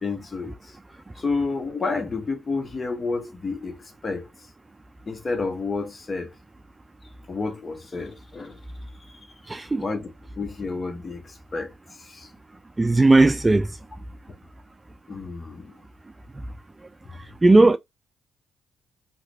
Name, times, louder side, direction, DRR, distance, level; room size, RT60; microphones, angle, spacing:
voice 1, 0.0-0.5 1.2-3.8 4.0-4.3 5.1-6.3 7.3-8.6 9.8-11.2 11.5-11.7 12.1-12.3 15.1-15.7, left 4 dB, 35° left, 1.0 m, -30 dB
voice 2, 9.5-9.9 12.8-13.8 17.1-17.8, right 2 dB, 20° right, 0.3 m, -17 dB
2.9 x 2.5 x 3.3 m
cardioid pair, 70°, 0 cm